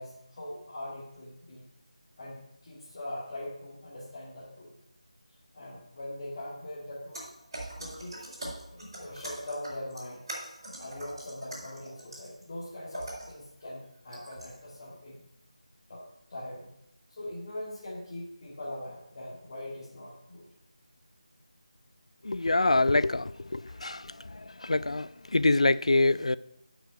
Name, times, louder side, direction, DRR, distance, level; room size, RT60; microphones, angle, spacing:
voice 1, 0.0-1.7 2.2-4.7 5.5-7.2 7.8-8.3 8.7-10.2 10.8-15.2 15.9-16.0 16.3-16.7 17.1-20.5 23.6-23.8, left 1 dB, 35° left, 2.1 m, -41 dB
sound 1, 7.1-12.4 12.9-13.4 14.1-14.6, right 1 dB, 35° right, 4.6 m, -42 dB
voice 2, 22.2-24.1 24.6-26.4, left 2 dB, 65° left, 0.4 m, -25 dB
11.5 x 6.2 x 5.0 m
figure-of-eight pair, 165°, 4 cm